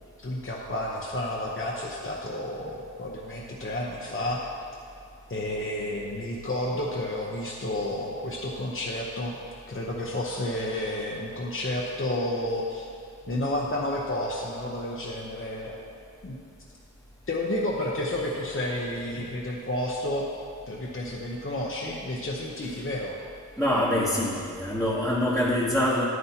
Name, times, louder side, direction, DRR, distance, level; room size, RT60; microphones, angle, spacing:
voice 1, 0.2-4.4 5.3-9.4 9.7-12.9 13.3-15.8 16.2-16.4 17.3-20.2 20.7-23.2, left 1 dB, 45° left, -3 dB, 0.9 m, -31 dB
voice 2, 23.6-26.0, left 1 dB, ahead, -7 dB, 1.2 m, -25 dB
9.5 x 9.5 x 2.9 m, 2.5 s
wide cardioid pair, 45°, 31 cm